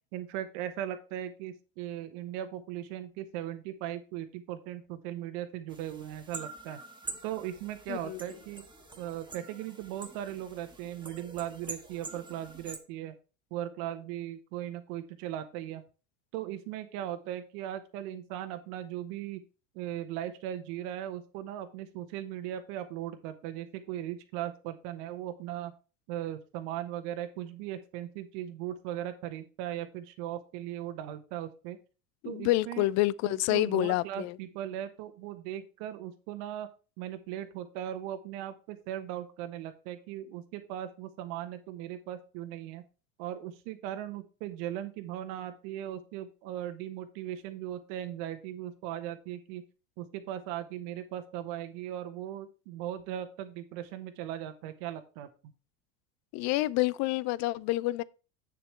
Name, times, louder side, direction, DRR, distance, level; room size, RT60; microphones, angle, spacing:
voice 1, 0.1-6.8 7.2-8.6 9.0-13.1 13.5-15.8 16.3-19.4 19.7-25.7 26.1-31.8 32.2-32.8 33.5-36.7 37.0-42.8 43.2-49.6 50.0-55.3, right 12 dB, 55° right, 1.2 m, -38 dB
sound 1, 5.7-12.8, right 3 dB, 10° right, 1.4 m, -46 dB
voice 2, 7.9-8.2 32.2-34.4 56.3-58.0, left 17 dB, 40° left, 0.4 m, -28 dB
8.5 x 7.0 x 3.3 m
hypercardioid pair, 80°, 43 cm